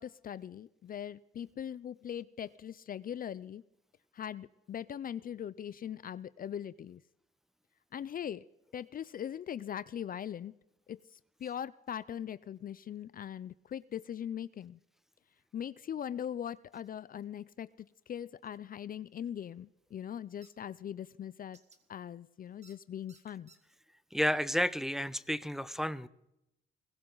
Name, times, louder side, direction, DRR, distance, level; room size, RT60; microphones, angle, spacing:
voice 1, 0.0-3.6 4.1-7.0 7.9-8.4 8.7-10.5 10.9-14.8 15.5-21.6 21.9-23.5, left 9 dB, 45° left, 18 dB, 0.5 m, -41 dB
sound 1, 20.4-20.5 21.5-21.8 22.6-22.8 23.1-23.6, right 4 dB, 35° right, 2.1 m, -60 dB
voice 2, 24.1-26.1, equal, ahead, 15 dB, 0.7 m, -31 dB
21.5 x 16.0 x 4.0 m, 0.81 s
cardioid pair, 90°, 20 cm